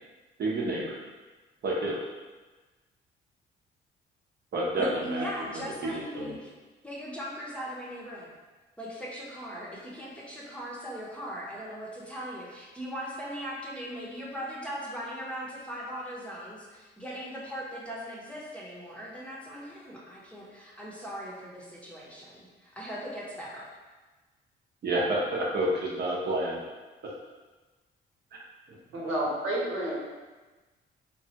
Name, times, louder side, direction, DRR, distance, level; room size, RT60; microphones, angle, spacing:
voice 1, 0.4-1.0 1.6-2.0 4.5-5.3 5.5-6.3 24.8-26.5, right 1 dB, 55° right, -4 dB, 0.8 m, -29 dB
voice 2, 4.8-6.5 6.8-8.3 8.8-23.7, equal, 5° left, -6 dB, 0.7 m, -39 dB
voice 3, 28.9-29.9, right 1 dB, 80° right, -6 dB, 1.1 m, -30 dB
3.0 x 2.2 x 2.9 m, 1.2 s
cardioid pair, 90°, 20 cm